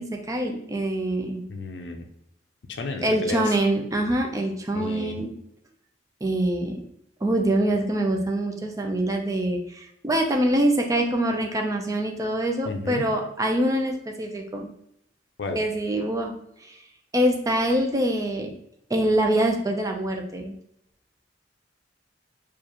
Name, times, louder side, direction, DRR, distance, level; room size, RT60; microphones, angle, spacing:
voice 1, 0.0-1.4 3.0-5.3 6.2-6.8 7.2-14.7 15.5-16.3 16.6-16.8 17.1-18.5 18.9-20.5, right 1 dB, 20° right, 3 dB, 0.5 m, -24 dB
voice 2, 1.5-2.1 2.7-3.6 4.7-5.2 12.6-13.1 15.4-15.6, left 3 dB, 65° left, 4 dB, 0.5 m, -32 dB
4.6 x 2.5 x 2.9 m, 0.75 s
head